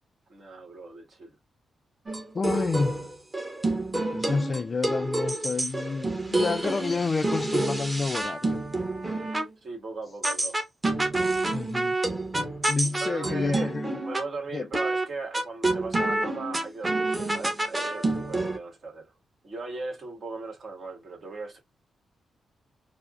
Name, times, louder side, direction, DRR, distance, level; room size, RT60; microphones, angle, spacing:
voice 1, 0.3-1.3 9.6-10.6 11.3-11.5 12.8-13.7 14.0-19.1 19.4-21.6, right 3 dB, 55° right, 1.6 m, -38 dB
sound 1, 2.1-9.5 10.2-14.3 14.7-15.0 15.3-18.6, right 2 dB, 20° right, 1.0 m, -28 dB
voice 2, 2.3-3.0 4.1-8.6 11.5-12.0 12.7-14.0 14.5-14.7, left 4 dB, 40° left, 0.3 m, -29 dB
4.6 x 2.0 x 2.4 m
cardioid pair, 90°, 0 cm